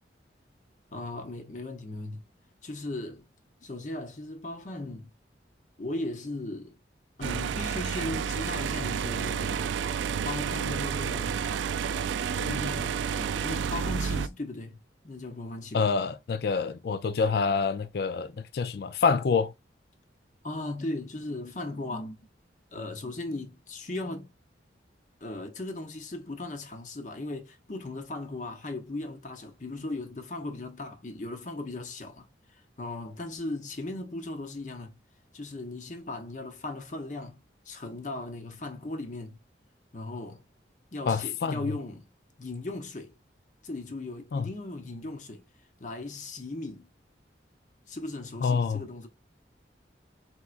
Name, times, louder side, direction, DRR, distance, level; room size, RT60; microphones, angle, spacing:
voice 1, 0.9-2.2 2.6-3.2 3.6-5.1 5.8-6.8 7.2-9.7 10.2-11.4 12.3-14.8 15.0-15.9 20.4-22.3 22.7-24.3 25.2-32.3 32.8-35.0 35.3-39.4 39.9-40.4 40.9-42.1 42.4-43.1 43.6-45.4 45.8-46.9 47.9-49.1, left 2 dB, 40° left, 0.8 m, -37 dB
sound 1, 7.2-14.3, right 7 dB, 80° right, 0.3 m, -30 dB
voice 2, 15.7-19.5 41.1-41.6 44.3-44.5 48.4-48.8, left 5 dB, 55° left, 0.4 m, -27 dB
4.4 x 3.5 x 2.4 m
head